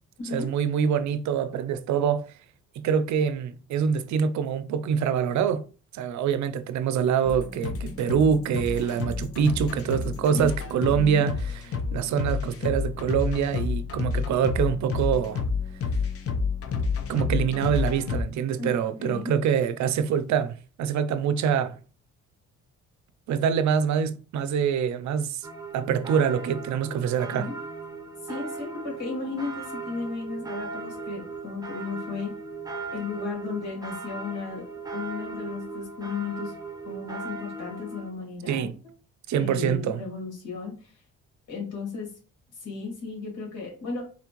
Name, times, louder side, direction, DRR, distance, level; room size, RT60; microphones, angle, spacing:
voice 1, 0.3-2.3 2.8-5.7 5.9-11.3 11.9-15.4 17.1-21.8 23.3-25.5 25.7-27.5 38.5-38.8 39.3-40.0, right 7 dB, 70° right, 0.5 m, -25 dB
sound 1, 7.2-18.2, left 5 dB, 50° left, 0.7 m, -30 dB
voice 2, 10.9-11.3 18.6-19.3 27.3-27.5 28.2-32.3 32.9-34.7 34.9-36.5 36.8-38.9 39.3-41.0 41.5-42.1 42.5-44.0, left 4 dB, 75° left, 2.4 m, -35 dB
sound 2, 25.4-38.1, right 3 dB, 10° right, 0.9 m, -38 dB
4.1 x 3.4 x 3.0 m
cardioid pair, 90°, 30 cm